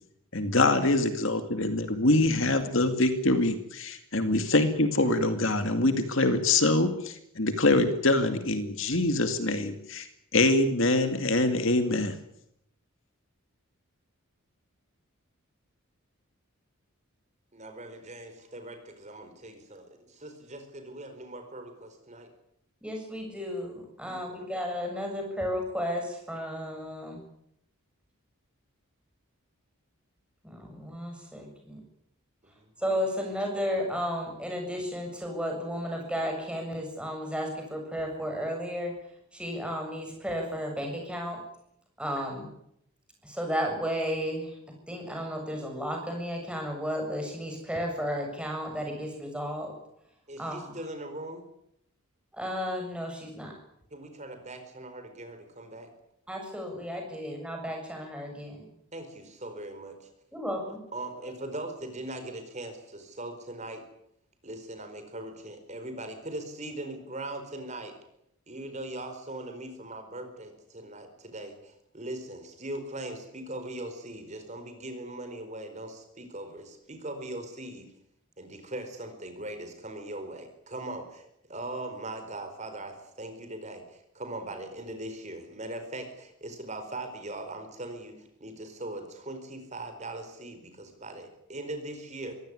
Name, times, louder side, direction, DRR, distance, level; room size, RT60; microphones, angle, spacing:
voice 1, 0.3-10.1 10.3-12.2, left 2 dB, 60° left, 8 dB, 2.3 m, -24 dB
voice 2, 17.5-19.8 20.1-22.3 24.2-24.4 32.4-32.7 50.3-51.4 53.9-55.9 58.9-60.1 60.9-63.8 64.4-68.0 68.5-77.9 78.4-81.2 81.5-92.3, right 1 dB, 30° right, 7 dB, 4.6 m, -40 dB
voice 3, 22.8-27.2 30.4-31.8 32.8-38.9 39.3-41.4 42.0-42.5 43.2-44.5 44.9-49.7 50.4-50.7 52.3-53.5 56.3-58.7 60.3-60.8, equal, 5° right, 2 dB, 7.2 m, -33 dB
24.5 x 16.5 x 9.9 m, 0.76 s
head